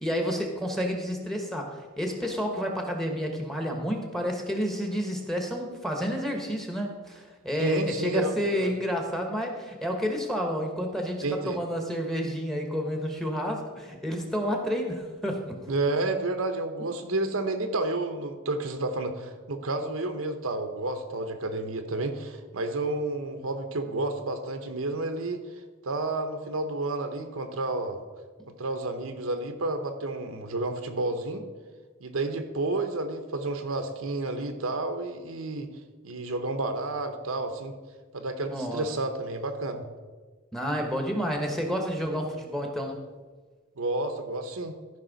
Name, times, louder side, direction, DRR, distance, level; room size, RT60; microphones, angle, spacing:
voice 1, 0.0-15.6 38.5-38.9 40.5-43.0, equal, ahead, 2 dB, 1.1 m, -30 dB
voice 2, 7.6-8.7 11.2-11.6 15.7-25.4 25.8-28.0 28.6-31.4 32.0-35.7 36.0-37.8 38.1-39.8 43.8-44.7, right 2 dB, 75° right, 7 dB, 0.9 m, -30 dB
14.0 x 5.4 x 4.0 m, 1.4 s
head